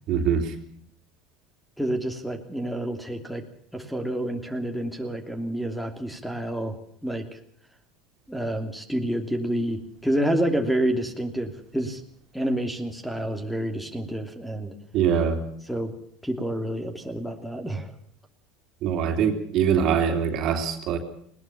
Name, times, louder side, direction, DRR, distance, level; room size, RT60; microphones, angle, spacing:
voice 1, 0.1-0.5 14.9-15.4 18.8-21.0, right 7 dB, 50° right, 6 dB, 3.2 m, -23 dB
voice 2, 1.8-3.4 3.7-6.8 7.0-7.4 8.3-12.0 12.3-14.7 15.7-15.9 16.2-17.9, right 1 dB, ahead, 7 dB, 3.0 m, -28 dB
20.0 x 19.0 x 7.0 m, 0.67 s
hypercardioid pair, 75°, 0 cm